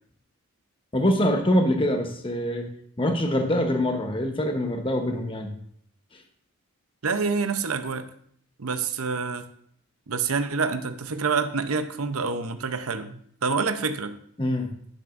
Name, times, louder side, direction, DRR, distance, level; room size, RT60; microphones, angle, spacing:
voice 1, 0.9-2.7 3.0-5.5 14.4-14.7, left 1 dB, 25° left, 4 dB, 1.0 m, -24 dB
voice 2, 7.0-8.1 8.6-9.4 10.1-14.2, right 5 dB, 75° right, 9 dB, 0.7 m, -27 dB
11.5 x 9.9 x 2.6 m, 0.63 s
head